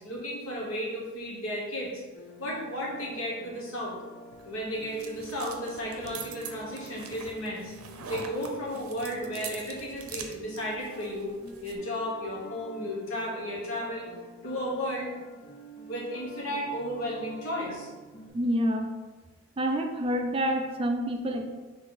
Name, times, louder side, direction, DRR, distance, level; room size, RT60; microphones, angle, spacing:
voice 1, 0.0-2.0 2.4-4.0 4.4-7.7 8.1-11.3 11.6-14.1 14.4-15.1 15.9-17.9, equal, 75° left, -3 dB, 1.2 m, -34 dB
sound 1, 2.1-18.3, right 1 dB, 45° left, 0.6 m, -48 dB
sound 2, 4.3-11.8, right 6 dB, 85° right, 0.5 m, -44 dB
voice 2, 18.3-18.9 19.6-21.4, equal, 25° right, 4 dB, 0.3 m, -27 dB
3.8 x 3.2 x 4.1 m, 1.3 s
head